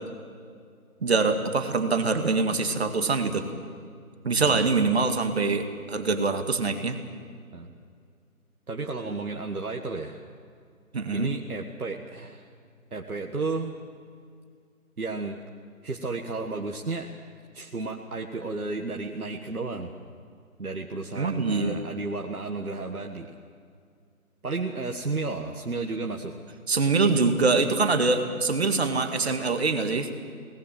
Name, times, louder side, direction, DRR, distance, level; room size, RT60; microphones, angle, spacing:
voice 1, 1.0-3.5 4.2-7.0 10.9-11.3 21.2-21.8 26.7-30.1, right 4 dB, 45° right, 7 dB, 2.0 m, -24 dB
voice 2, 8.7-10.2 11.1-12.5 12.9-13.7 15.0-15.4 15.8-17.1 17.5-20.0 20.6-23.3 24.4-26.3, right 3 dB, 75° right, 2 dB, 1.8 m, -32 dB
23.5 x 19.0 x 7.5 m, 2.2 s
figure-of-eight pair, 160°, 44 cm